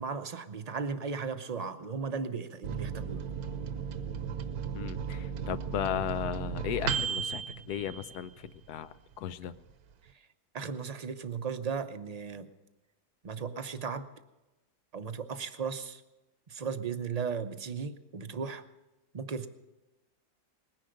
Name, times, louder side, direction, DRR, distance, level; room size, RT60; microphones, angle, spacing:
voice 1, 0.0-3.2 10.5-12.5 13.2-14.1 14.9-16.0 16.5-18.6 19.1-19.5, right 5 dB, 45° right, 10 dB, 0.5 m, -36 dB
Microwave oven, 2.6-8.7 9.1-9.2 9.5-10.1, right 7 dB, 75° right, 1.3 m, -35 dB
voice 2, 4.7-9.5, left 10 dB, 80° left, 14 dB, 1.2 m, -36 dB
20.0 x 10.5 x 6.4 m, 1.0 s
omnidirectional pair, 1.7 m